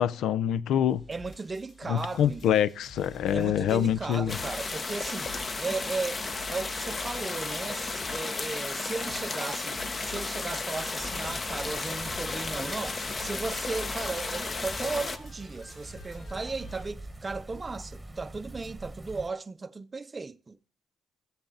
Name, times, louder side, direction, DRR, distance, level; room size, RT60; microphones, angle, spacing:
voice 1, 0.0-1.0 1.9-4.4, left 10 dB, 80° left, 0.4 m, -25 dB
sound 1, 0.9-16.9, left 1 dB, 60° left, 3.7 m, -48 dB
voice 2, 1.1-2.6 3.3-20.6, right 4 dB, 30° right, 0.6 m, -36 dB
sound 2, 4.3-15.2, left 3 dB, 40° left, 1.0 m, -34 dB
sound 3, 11.0-19.3, right 1 dB, 15° right, 1.1 m, -45 dB
14.5 x 7.1 x 3.9 m
cardioid pair, 85°, 0 cm